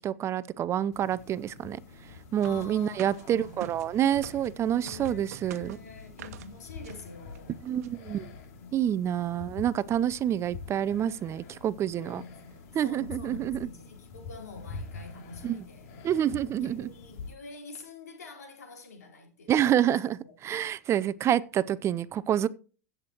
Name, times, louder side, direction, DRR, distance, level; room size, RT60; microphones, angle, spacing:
voice 1, 0.0-1.8 2.3-5.8 7.6-8.3 8.7-12.2 12.7-13.7 15.4-15.6 16.0-16.9 19.5-22.5, right 10 dB, 35° right, 0.5 m, -28 dB
sound 1, 0.9-17.3, left 4 dB, 65° left, 2.8 m, -46 dB
voice 2, 2.4-3.6 4.7-7.6 8.6-8.8 12.0-15.9 16.5-20.3, left 4 dB, 85° left, 4.2 m, -47 dB
sound 2, 2.4-4.5 4.9-6.5 6.8-7.0 7.3-7.4 7.6-7.9, right 11 dB, 70° right, 1.0 m, -46 dB
16.0 x 7.9 x 2.9 m
hypercardioid pair, 100°, 9 cm